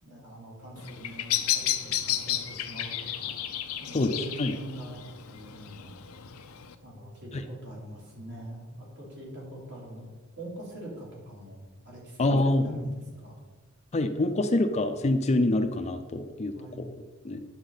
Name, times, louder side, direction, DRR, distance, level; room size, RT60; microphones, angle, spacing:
voice 1, 0.0-3.3 3.8-6.0 6.8-10.0 10.4-13.4 16.1-16.2 16.5-16.9, right 1 dB, 55° right, -4 dB, 3.4 m, -43 dB
Bird vocalization bird call bird song, 0.8-6.7, left 11 dB, 90° left, 0.6 m, -32 dB
voice 2, 3.9-4.5 12.2-12.8 13.9-17.4, left 2 dB, 30° left, 7 dB, 0.5 m, -26 dB
9.8 x 7.1 x 4.1 m, 1.3 s
head